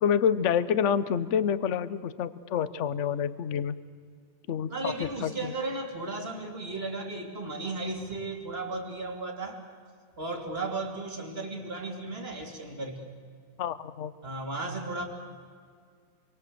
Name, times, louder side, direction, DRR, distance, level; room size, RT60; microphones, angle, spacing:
voice 1, 0.0-3.7 4.5-5.3 13.6-14.1, left 8 dB, 50° left, 15 dB, 0.9 m, -27 dB
voice 2, 4.7-9.6 10.2-13.1 14.2-15.0, right 2 dB, 30° right, 2 dB, 3.2 m, -35 dB
27.5 x 23.5 x 7.8 m, 2.1 s
omnidirectional pair, 2.2 m